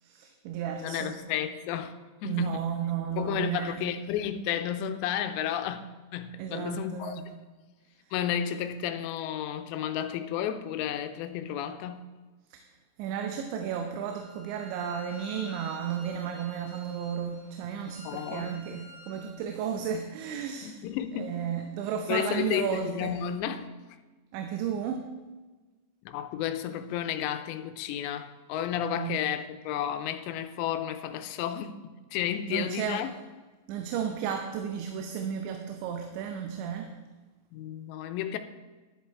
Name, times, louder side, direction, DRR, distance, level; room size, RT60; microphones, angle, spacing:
voice 1, 0.0-1.2 2.2-3.9 6.4-7.3 12.5-12.6 13.0-20.8 21.2-23.2 24.3-25.1 29.0-29.2 32.5-33.0 33.7-36.9, right 8 dB, 85° right, 3.1 m, -33 dB
voice 2, 0.8-2.6 3.2-7.3 8.1-12.1 18.0-18.5 20.6-21.2 22.1-23.7 26.1-31.7 32.1-33.1 37.5-38.4, left 10 dB, 85° left, 2.9 m, -32 dB
Bowed string instrument, 14.0-19.4, left 1 dB, 60° right, 4.9 m, -50 dB
11.5 x 11.0 x 4.6 m
omnidirectional pair, 5.1 m